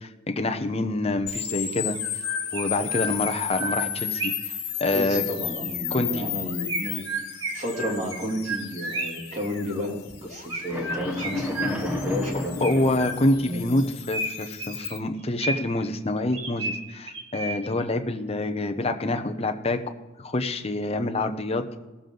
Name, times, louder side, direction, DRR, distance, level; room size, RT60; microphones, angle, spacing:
voice 1, 0.0-2.0 2.5-4.3 4.8-5.2 5.9-6.3 12.6-19.8 20.2-21.8, left 2 dB, 30° left, 6 dB, 0.8 m, -26 dB
Chirp tweet, 1.2-1.3 2.0-4.6 6.7-9.3 10.5-12.1 12.6-13.5 14.1-15.9 16.3-17.8, right 2 dB, 65° right, 1.4 m, -33 dB
sound 1, 1.3-15.0, left 9 dB, 55° left, 1.8 m, -34 dB
voice 2, 4.9-7.0 7.5-10.0 10.2-12.8 13.4-13.6, left 1 dB, 35° right, -2 dB, 2.6 m, -32 dB
sound 2, 10.7-14.0, left 1 dB, 5° right, 0.9 m, -32 dB
18.5 x 7.1 x 3.9 m, 1.2 s
head